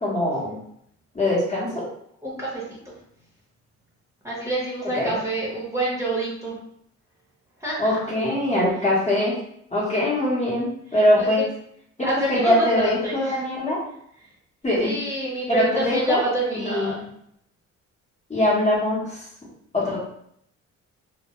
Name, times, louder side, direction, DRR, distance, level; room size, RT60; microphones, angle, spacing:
voice 1, 0.0-0.5 1.1-1.8 4.9-5.1 7.8-9.4 9.7-11.4 12.3-13.8 14.6-14.9 15.5-16.2 16.6-17.0 18.3-19.2 19.7-20.0, left 1 dB, 25° left, -6 dB, 0.9 m, -22 dB
voice 2, 2.2-2.8 4.2-6.6 7.6-8.1 10.9-11.5 12.0-13.4 14.8-17.0, right 1 dB, 10° right, -7 dB, 0.8 m, -27 dB
2.2 x 2.1 x 2.9 m, 0.70 s
cardioid pair, 90°, 30 cm